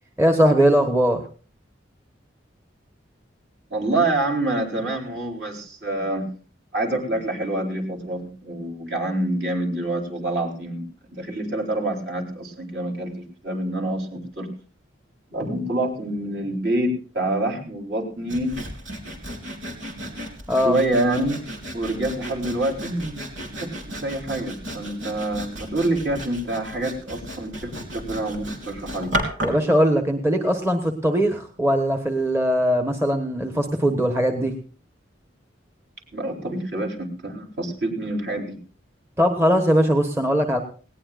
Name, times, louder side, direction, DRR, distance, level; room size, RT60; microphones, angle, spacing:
voice 1, 0.2-1.2 20.5-20.8 29.4-34.5 39.2-40.6, equal, 15° right, 4 dB, 1.2 m, -20 dB
voice 2, 3.7-6.3 6.7-10.8 11.1-14.5 15.3-18.5 20.6-21.4 21.7-23.3 23.5-29.1 36.1-38.6, right 1 dB, 55° right, 1 dB, 4.2 m, -26 dB
Sawing, 18.3-29.7, right 1 dB, 90° right, 3.8 m, -34 dB
19.5 x 18.5 x 2.5 m, 0.40 s
head